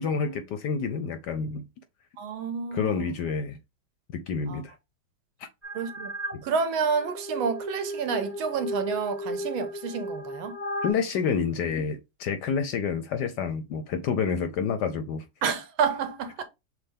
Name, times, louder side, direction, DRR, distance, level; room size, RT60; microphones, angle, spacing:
voice 1, 0.0-1.6 2.7-3.6 4.1-4.7 6.3-6.4 10.8-15.2, left 6 dB, 70° left, 1.1 m, -28 dB
voice 2, 2.2-3.1 4.5-4.6 5.7-6.1 6.4-10.6 15.4-16.4, right 5 dB, 80° right, 1.6 m, -29 dB
sound 1, 5.6-6.4 6.9-10.9, equal, 10° right, 0.6 m, -35 dB
6.6 x 2.2 x 3.4 m
omnidirectional pair, 2.2 m